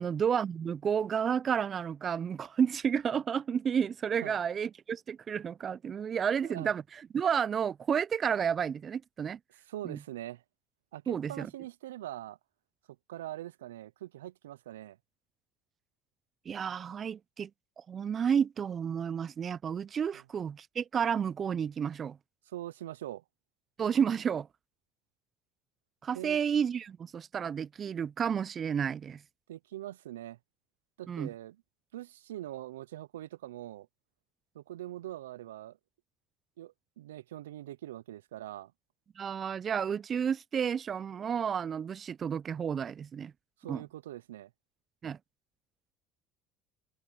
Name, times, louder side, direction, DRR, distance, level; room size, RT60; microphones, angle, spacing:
voice 1, 0.0-6.8 7.1-9.4 9.8-10.0 11.1-11.5 16.5-17.5 17.9-22.2 23.8-24.5 26.0-29.2 31.1-31.3 39.2-43.3 43.7-43.8 45.0-45.2, right 7 dB, 40° right, 0.6 m, -31 dB
voice 2, 6.0-6.7 9.5-10.4 10.9-12.4 13.1-15.0 22.5-23.2 26.1-26.4 29.5-30.4 31.0-31.6 31.9-33.9 34.5-35.8 36.6-38.7 43.6-44.5, right 13 dB, 85° right, 0.6 m, -43 dB
hypercardioid pair, 75°, 0 cm